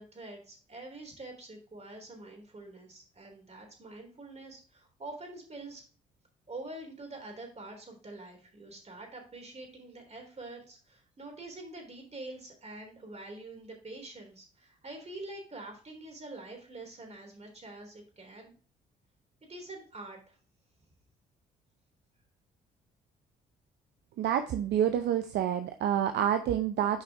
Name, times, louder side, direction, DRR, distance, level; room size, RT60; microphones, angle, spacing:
voice 1, 0.0-5.8 6.5-18.5 19.5-20.4, right 2 dB, 35° right, 3 dB, 3.6 m, -46 dB
voice 2, 24.2-27.0, right 10 dB, 65° right, 9 dB, 0.6 m, -28 dB
8.9 x 5.2 x 3.6 m, 0.39 s
hypercardioid pair, 50°, 19 cm